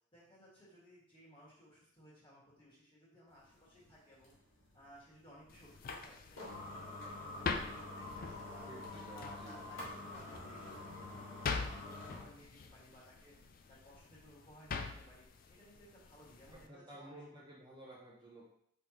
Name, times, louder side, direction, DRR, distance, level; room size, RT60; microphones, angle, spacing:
voice 1, 0.1-4.4 4.7-8.7 9.1-13.4 13.7-17.4, equal, 25° left, -8 dB, 1.8 m, -60 dB
sound 1, 3.3-12.4, left 2 dB, 75° left, 1.6 m, -48 dB
sound 2, 5.5-16.7, left 4 dB, 45° left, 0.3 m, -45 dB
voice 2, 8.6-9.8 16.5-18.4, right 1 dB, 20° right, -5 dB, 0.6 m, -54 dB
5.1 x 3.4 x 2.9 m, 0.70 s
head